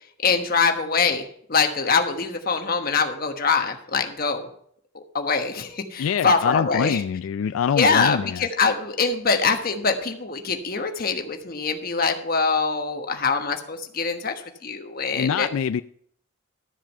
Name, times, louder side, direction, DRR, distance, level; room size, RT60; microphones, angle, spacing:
voice 1, 0.2-1.2 1.5-4.5 4.9-7.0 7.7-14.3 14.6-15.5, left 4 dB, 45° left, 5 dB, 1.3 m, -23 dB
voice 2, 6.0-8.5 15.1-15.8, left 7 dB, 85° left, 12 dB, 0.3 m, -24 dB
13.0 x 7.5 x 5.4 m, 0.64 s
head